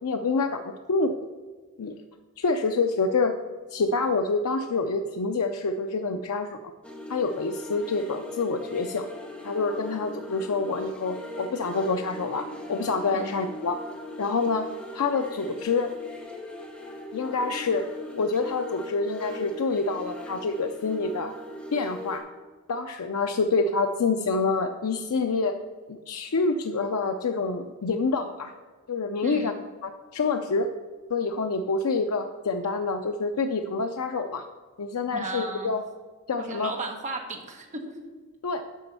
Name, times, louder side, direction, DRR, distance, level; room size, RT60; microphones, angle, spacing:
voice 1, 0.0-1.2 1.8-1.9 2.4-3.4 3.7-6.6 7.1-9.1 9.4-13.8 14.2-15.9 17.1-17.9 18.2-21.3 21.7-22.3 22.7-25.6 25.9-28.5 28.9-29.5 29.8-30.7 31.1-34.5 34.8-35.8 36.3-36.7 38.4-38.6, left 4 dB, 80° left, 5 dB, 0.5 m, -27 dB
sound 1, 6.8-22.2, left 1 dB, 5° left, 1.3 m, -40 dB
voice 2, 13.1-13.5 29.2-29.6 35.1-35.7 36.4-38.0, right 2 dB, 35° right, 2 dB, 1.2 m, -35 dB
8.2 x 5.3 x 6.9 m, 1.3 s
head